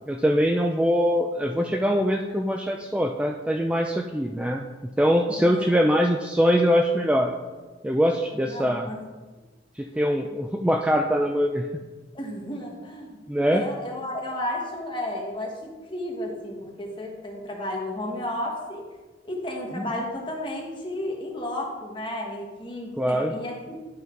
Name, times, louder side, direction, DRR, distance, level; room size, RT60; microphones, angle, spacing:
voice 1, 0.1-7.3 7.8-8.9 9.8-11.7 13.3-13.7 23.0-23.3, equal, 5° right, 3 dB, 0.3 m, -23 dB
voice 2, 5.4-6.0 8.4-9.0 12.1-13.2 13.5-18.8 19.3-23.7, left 1 dB, 25° left, -1 dB, 1.5 m, -33 dB
11.5 x 4.0 x 4.6 m, 1.3 s
head